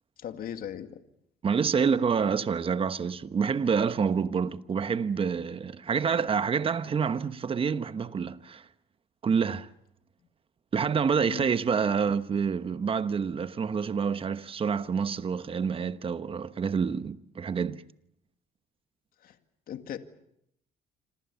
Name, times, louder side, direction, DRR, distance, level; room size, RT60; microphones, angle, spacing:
voice 1, 0.2-1.0 11.3-11.4 19.2-19.4 19.7-20.0, left 9 dB, 60° left, 2.2 m, -38 dB
voice 2, 1.4-8.6 9.2-9.7 10.7-17.8, right 6 dB, 35° right, 1.1 m, -27 dB
27.0 x 27.0 x 7.1 m
cardioid pair, 110°, 17 cm